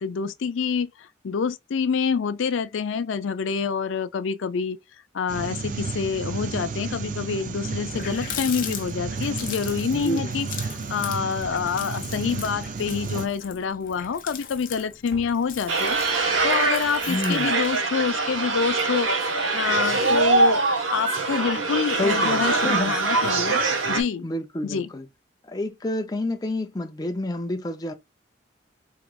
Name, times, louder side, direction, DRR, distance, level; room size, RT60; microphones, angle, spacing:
voice 1, 0.0-4.8 5.1-16.0 16.4-19.1 19.5-20.6 20.9-23.6 23.9-24.3 24.6-24.9, left 6 dB, 80° left, 0.4 m, -27 dB
sound 1, 5.3-13.3, right 4 dB, 40° right, 0.4 m, -32 dB
Water tap faucet, 7.4-7.5 7.7-17.8, left 8 dB, 45° left, 0.8 m, -39 dB
voice 2, 9.9-10.3 17.1-17.6 22.0-22.9 24.2-25.1 25.4-27.9, left 1 dB, 20° left, 0.5 m, -29 dB
sound 2, 15.7-24.0, right 3 dB, 90° right, 1.0 m, -23 dB
4.8 x 3.0 x 2.3 m
head